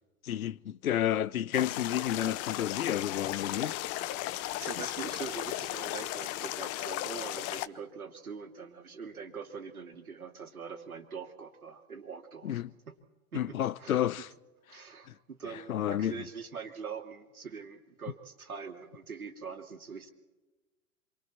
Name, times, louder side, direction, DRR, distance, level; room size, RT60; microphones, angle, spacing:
voice 1, 0.2-3.9 12.4-12.7 13.3-14.3 15.1-15.2 15.7-16.2, left 11 dB, 80° left, 0.8 m, -31 dB
sound 1, 1.5-7.7, left 15 dB, 35° left, 0.8 m, -36 dB
voice 2, 3.4-3.8 4.5-13.0 13.3-14.0 14.7-20.1, right 6 dB, 90° right, 2.5 m, -43 dB
27.0 x 23.5 x 4.3 m
hypercardioid pair, 100°, 42 cm